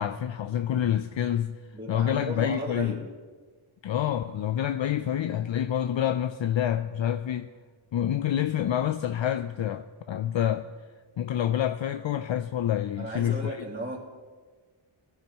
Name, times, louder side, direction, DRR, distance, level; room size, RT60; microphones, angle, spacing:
voice 1, 0.0-1.6 1.9-3.0 3.8-7.5 7.9-10.7 11.2-13.6, left 10 dB, 65° left, 0.5 m, -27 dB
voice 2, 1.7-3.0 13.0-14.0, right 1 dB, 20° right, 3.9 m, -35 dB
20.5 x 11.0 x 3.0 m
wide cardioid pair, 70°, 50 cm